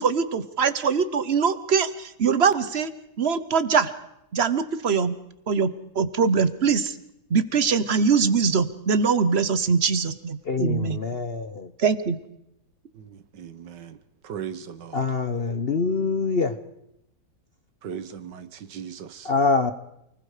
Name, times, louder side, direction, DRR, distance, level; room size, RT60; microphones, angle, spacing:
voice 1, 0.0-2.9 3.2-3.9 4.3-5.1 5.5-5.7 5.9-7.0 7.3-11.0 11.8-12.2, right 5 dB, 45° right, 14 dB, 1.0 m, -22 dB
voice 2, 10.4-11.7 14.9-16.6 19.2-19.7, left 4 dB, 45° left, 10 dB, 0.8 m, -24 dB
voice 3, 12.9-14.0 14.2-15.0 17.8-19.3, right 8 dB, 75° right, 12 dB, 1.8 m, -38 dB
28.5 x 20.5 x 5.0 m, 0.82 s
omnidirectional pair, 1.9 m